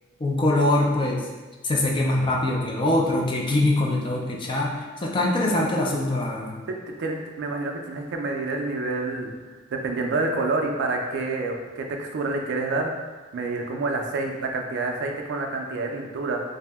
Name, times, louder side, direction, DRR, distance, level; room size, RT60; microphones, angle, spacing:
voice 1, 0.2-1.2 1.6-6.6, left 1 dB, 25° left, -1 dB, 0.3 m, -23 dB
voice 2, 5.5-5.9 6.7-9.3 9.7-12.9 13.3-16.4, right 3 dB, 60° right, 2 dB, 0.4 m, -28 dB
2.7 x 2.1 x 3.3 m, 1.3 s
head